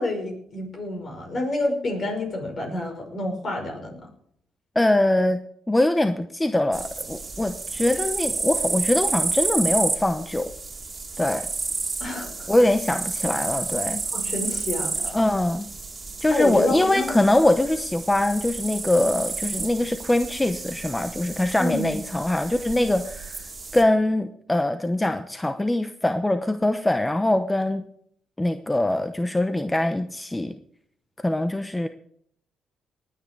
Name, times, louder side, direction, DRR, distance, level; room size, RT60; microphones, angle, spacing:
voice 1, 0.0-4.1 12.0-12.5 14.1-14.9 16.3-17.1 21.6-21.9, left 2 dB, 45° left, 4 dB, 5.7 m, -28 dB
voice 2, 4.7-5.4 5.7-10.5 11.2-11.5 12.5-14.0 15.0-15.7 16.2-23.4 23.7-27.8 28.4-30.6 31.2-31.9, left 1 dB, 10° left, 9 dB, 0.8 m, -23 dB
sound 1, 6.7-23.8, right 4 dB, 25° right, 2.4 m, -31 dB
19.5 x 9.4 x 4.7 m, 0.65 s
cardioid pair, 90°, 0 cm